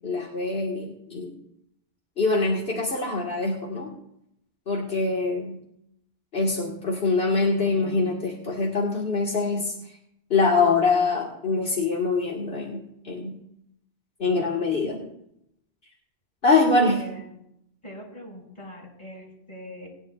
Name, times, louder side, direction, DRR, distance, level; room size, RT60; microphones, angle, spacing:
voice 1, 0.0-1.3 2.2-3.9 4.7-5.6 6.3-9.7 10.3-13.4 14.2-15.1 16.4-17.0, left 3 dB, 70° left, -3 dB, 2.1 m, -24 dB
voice 2, 16.9-17.2 17.8-19.9, equal, 25° left, -4 dB, 5.9 m, -42 dB
20.5 x 11.0 x 2.5 m, 0.76 s
omnidirectional pair, 1.1 m